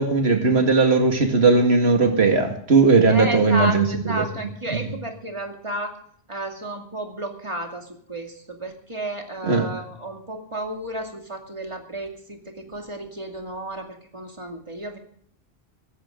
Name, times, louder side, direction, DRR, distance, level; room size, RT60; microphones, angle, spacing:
voice 1, 0.0-4.2 9.5-9.7, right 4 dB, 70° right, 4 dB, 2.3 m, -18 dB
voice 2, 3.1-6.0 6.3-15.0, right 1 dB, 25° right, 3 dB, 2.6 m, -32 dB
17.0 x 15.0 x 3.8 m, 0.64 s
omnidirectional pair, 1.1 m